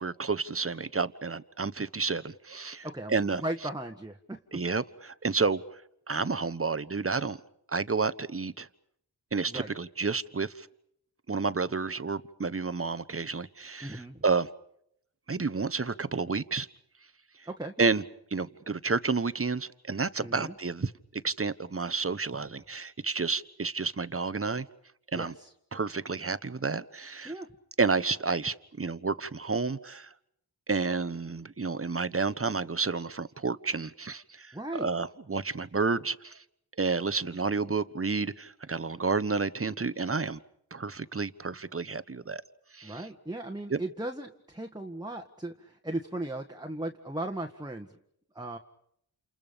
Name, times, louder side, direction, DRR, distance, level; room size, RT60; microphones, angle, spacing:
voice 1, 0.0-3.4 4.5-5.6 6.1-7.4 7.7-8.7 9.3-10.7 11.3-14.5 15.3-16.7 17.8-18.0 18.3-24.7 25.1-25.3 25.7-27.3 27.8-30.1 30.7-36.4 36.8-40.4 40.7-42.4 42.7-43.1 43.7-43.8, right 4 dB, 30° right, 15 dB, 1.1 m, -30 dB
voice 2, 2.8-4.4 9.5-9.7 13.8-14.2 17.5-17.9 20.2-20.5 25.1-25.5 27.2-27.5 34.5-34.9 42.8-47.9 48.3-48.6, right 1 dB, 10° right, 4 dB, 1.6 m, -37 dB
29.0 x 28.5 x 5.3 m, 0.73 s
cardioid pair, 40°, 43 cm